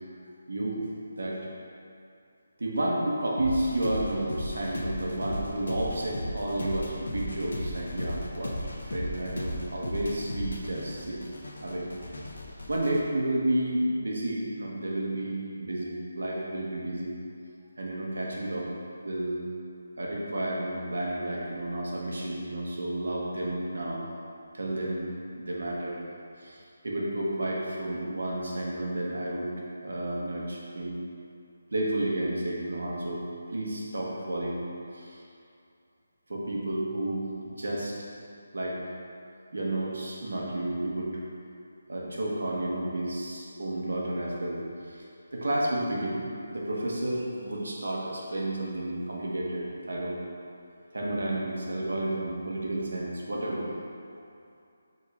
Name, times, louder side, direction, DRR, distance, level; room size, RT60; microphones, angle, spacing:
voice 1, 0.5-1.4 2.6-11.2 11.6-11.9 12.7-17.1 17.8-18.7 19.0-19.4 20.0-24.0 24.5-25.1 25.3-26.0 26.4-29.5 29.8-31.0 31.7-34.6 34.9-35.2 36.3-37.9 38.5-38.8 39.5-41.1 41.9-45.0 45.3-46.2 46.5-50.2 50.9-53.7, right 1 dB, 90° right, -4 dB, 1.5 m, -31 dB
sound 1, 3.4-13.0, left 1 dB, 80° left, 1.1 m, -36 dB
5.3 x 3.8 x 5.0 m, 2.5 s
hypercardioid pair, 180°, 0 cm